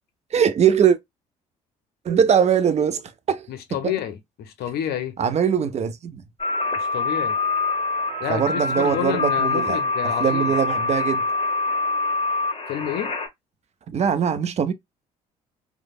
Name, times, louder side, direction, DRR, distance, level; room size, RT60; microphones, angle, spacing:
voice 1, 0.3-1.0 2.1-3.0 3.3-3.5 3.8-3.9 5.2-6.2 8.3-9.8 10.0-11.3 13.9-14.7, right 7 dB, 35° right, 0.5 m, -21 dB
voice 2, 3.5-5.2 6.8-7.3 8.2-10.5 12.7-13.1, left 10 dB, 55° left, 0.6 m, -29 dB
sound 1, 6.4-13.3, left 3 dB, 30° left, 1.0 m, -25 dB
3.2 x 2.0 x 2.3 m
figure-of-eight pair, 50°, 19 cm